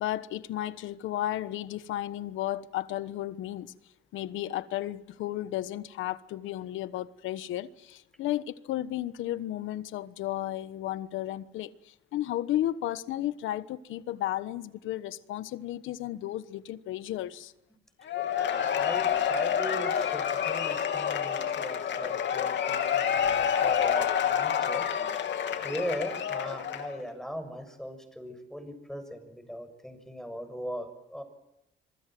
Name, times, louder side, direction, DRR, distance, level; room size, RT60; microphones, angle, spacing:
voice 1, 0.0-3.7 4.1-17.5, left 13 dB, 90° left, 1.2 m, -33 dB
Cheering / Applause / Crowd, 18.1-27.0, left 8 dB, 65° left, 3.0 m, -28 dB
voice 2, 18.7-25.1 25.6-31.2, equal, ahead, 6.8 m, -39 dB
26.5 x 24.0 x 7.7 m
cardioid pair, 90°, 20 cm